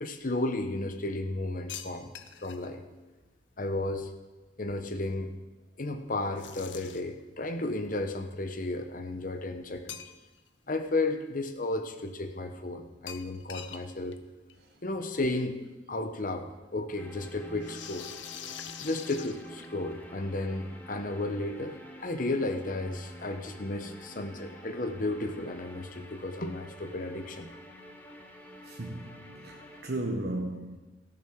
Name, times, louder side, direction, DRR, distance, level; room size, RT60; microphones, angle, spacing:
voice 1, 0.0-2.1 2.4-2.8 3.6-4.1 4.6-5.3 5.8-10.0 10.7-14.2 14.8-15.6 15.9-18.1 18.8-27.5, left 2 dB, 45° left, 7 dB, 1.0 m, -33 dB
sound 1, 1.7-2.7 6.4-7.2 9.9-10.5 10.8-10.9 13.1-13.9 14.1-14.2 14.5-14.6 15.8-15.9 17.6-19.9, left 9 dB, 75° left, 0.7 m, -44 dB
sound 2, 16.9-29.8, equal, 10° left, 1.1 m, -49 dB
voice 2, 28.6-30.8, right 1 dB, 60° right, 1 dB, 1.1 m, -35 dB
15.5 x 7.2 x 6.2 m, 1.2 s
head